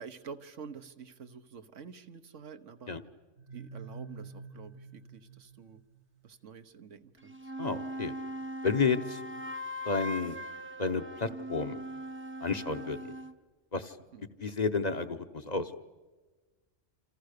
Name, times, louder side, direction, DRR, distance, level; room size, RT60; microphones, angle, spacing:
voice 1, 0.0-2.9 3.5-5.8 6.2-7.5 14.1-14.3, right 6 dB, 85° right, 9 dB, 1.5 m, -48 dB
sound 1, 3.4-6.2, right 4 dB, 70° right, 1.6 m, -47 dB
sound 2, 7.2-13.4, equal, 15° right, 0.6 m, -40 dB
voice 2, 7.6-8.1 8.6-9.2 9.8-10.4 10.8-11.8 12.4-13.1 13.7-14.0 14.4-15.7, left 4 dB, 40° left, 9 dB, 0.9 m, -31 dB
28.0 x 28.0 x 6.7 m, 1.3 s
omnidirectional pair, 1.2 m